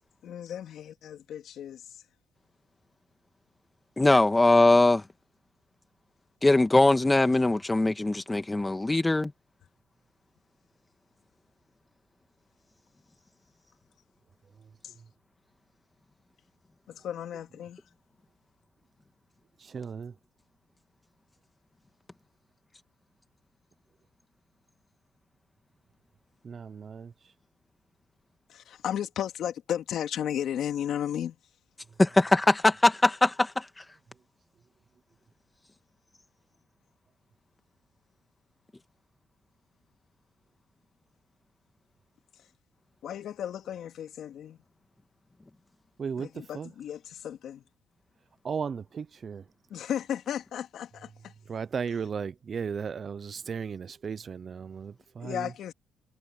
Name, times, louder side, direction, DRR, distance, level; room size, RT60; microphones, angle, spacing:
voice 1, 0.2-1.8 14.8-14.9 16.9-17.8 28.5-31.4 43.0-44.6 46.2-47.6 49.7-51.3 51.9-52.0 55.2-55.7, left 10 dB, 70° left, 2.6 m, -34 dB
voice 2, 4.0-5.0 6.4-9.3 32.0-33.8, left 2 dB, 15° left, 1.8 m, -21 dB
voice 3, 19.7-20.1 26.4-27.1 46.0-46.3 46.5-46.7 48.4-49.4 51.5-55.5, right 6 dB, 45° right, 0.6 m, -35 dB
cardioid pair, 90°, 0 cm